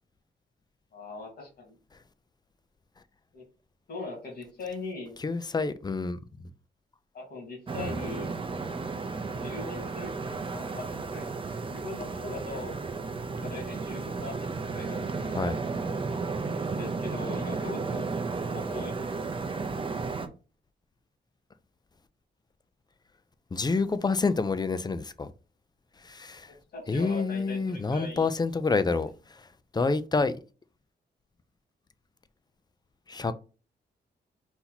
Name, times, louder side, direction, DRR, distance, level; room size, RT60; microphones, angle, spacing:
voice 1, 0.9-1.8 3.3-3.4 3.9-5.2 7.1-8.3 9.3-10.1 10.4-11.3 11.6-12.8 13.3-15.6 16.7-18.1 18.4-19.3 26.5-28.3, left 3 dB, 60° left, 2.2 m, -41 dB
voice 2, 5.2-6.2 7.8-8.0 15.3-15.6 23.5-25.3 26.0-26.5 26.9-29.1 29.7-30.4 33.1-33.3, left 4 dB, 20° left, 0.4 m, -27 dB
sound 1, 7.7-20.3, right 4 dB, 30° right, 0.6 m, -33 dB
4.2 x 2.8 x 4.0 m
cardioid pair, 100°, 18 cm